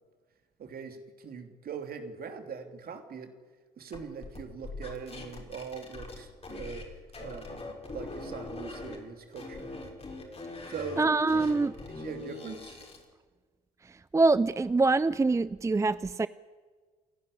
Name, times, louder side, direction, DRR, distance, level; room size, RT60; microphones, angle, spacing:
voice 1, 0.6-3.3 3.8-9.7 10.7-11.0 11.3-12.8, right 6 dB, 45° right, 6 dB, 3.0 m, -42 dB
sound 1, 3.9-6.9 7.1-9.0 9.3-13.0, left 2 dB, 30° left, 6.2 m, -42 dB
voice 2, 11.0-11.7 13.8-16.3, right 3 dB, 15° right, 17 dB, 0.5 m, -25 dB
28.5 x 11.5 x 10.0 m, 1.5 s
figure-of-eight pair, 55°, 21 cm